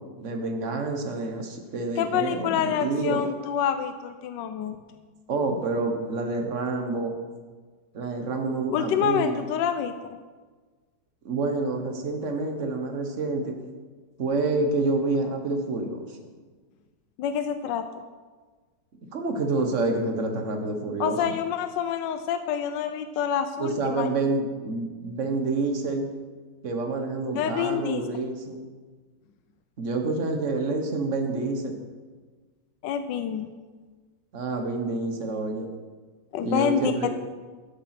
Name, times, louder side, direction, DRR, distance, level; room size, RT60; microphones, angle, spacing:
voice 1, 0.0-3.2 5.3-7.1 7.9-9.4 11.2-13.6 14.2-16.2 19.1-21.3 23.6-26.1 26.6-28.6 29.8-31.8 34.3-35.7 36.4-37.1, right 3 dB, 45° right, 4 dB, 1.6 m, -28 dB
voice 2, 2.0-4.8 8.7-9.9 17.2-18.0 21.0-24.1 27.3-28.0 32.8-33.5 36.3-37.1, left 8 dB, 80° left, 9 dB, 1.3 m, -27 dB
13.0 x 7.2 x 5.9 m, 1.4 s
omnidirectional pair, 2.0 m